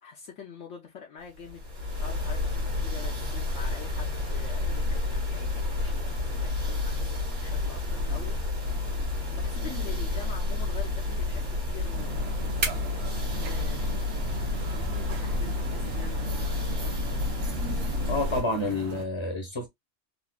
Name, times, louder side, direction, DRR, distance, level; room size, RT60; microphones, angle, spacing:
voice 1, 0.0-7.1 7.4-8.4 8.7-12.4 12.9-13.9 14.7-17.2, left 6 dB, 70° left, 1.1 m, -45 dB
sound 1, 1.4-18.4, left 2 dB, 85° right, 1.9 m, -30 dB
sound 2, 6.4-18.3, right 2 dB, 45° right, 1.5 m, -43 dB
sound 3, 11.9-19.0, right 4 dB, 60° right, 1.0 m, -39 dB
voice 2, 18.1-19.7, left 2 dB, 25° left, 0.8 m, -29 dB
4.1 x 2.5 x 2.2 m
omnidirectional pair, 1.3 m